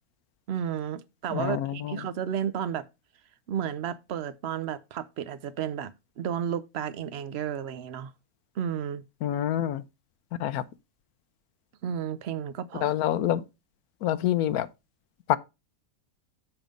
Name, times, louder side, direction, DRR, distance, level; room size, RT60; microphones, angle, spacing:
voice 1, 0.5-2.8 3.5-8.1 8.6-9.0 11.8-12.9, right 9 dB, 60° right, 0.8 m, -32 dB
voice 2, 1.3-2.1 9.2-9.8 10.4-10.7 12.7-13.4 14.0-14.7 15.3-15.4, left 11 dB, 85° left, 1.1 m, -27 dB
7.2 x 5.3 x 5.1 m
omnidirectional pair, 1.5 m